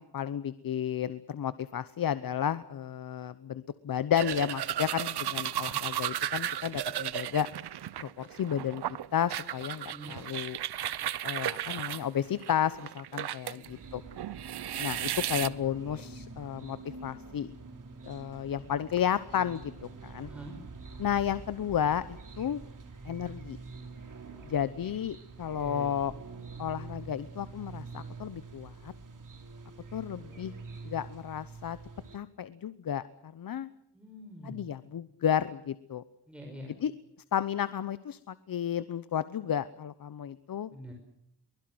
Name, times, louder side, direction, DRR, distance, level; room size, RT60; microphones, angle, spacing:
voice 1, 0.0-7.5 8.0-8.8 9.1-10.6 11.2-14.0 14.8-17.5 18.0-19.7 20.0-20.3 21.0-22.6 23.0-23.6 24.4-26.1 26.6-28.9 29.9-30.5 30.8-31.8 32.1-33.7 34.4-36.0 36.8-36.9 37.3-40.7, left 9 dB, 60° left, 14 dB, 0.9 m, -32 dB
sound 1, 4.2-13.7 14.1-15.5, right 11 dB, 85° right, 0.9 m, -35 dB
voice 2, 9.8-10.1 13.5-13.7 20.3-20.6 25.6-26.0 33.9-34.7 36.3-36.7 40.7-40.9, equal, 5° right, 2 dB, 5.6 m, -45 dB
sound 2, 13.6-32.2, right 4 dB, 55° right, 4.0 m, -46 dB
23.5 x 21.0 x 7.8 m, 0.76 s
wide cardioid pair, 105°, 38 cm